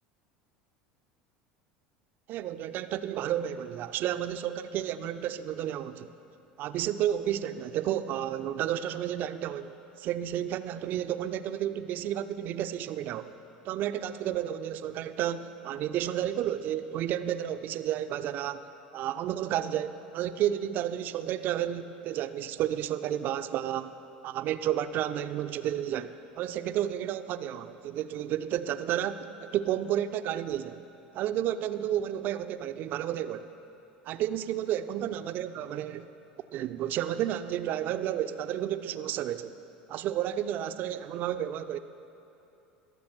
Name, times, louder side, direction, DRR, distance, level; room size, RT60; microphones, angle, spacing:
voice 1, 2.3-6.1 6.6-13.3 13.6-18.7 18.9-23.9 24.2-30.8 31.1-33.5 34.1-36.1 36.5-39.5 39.9-41.8, right 11 dB, 45° right, 11 dB, 0.5 m, -31 dB
21.5 x 7.2 x 5.9 m, 2.8 s
figure-of-eight pair, 70°, 5 cm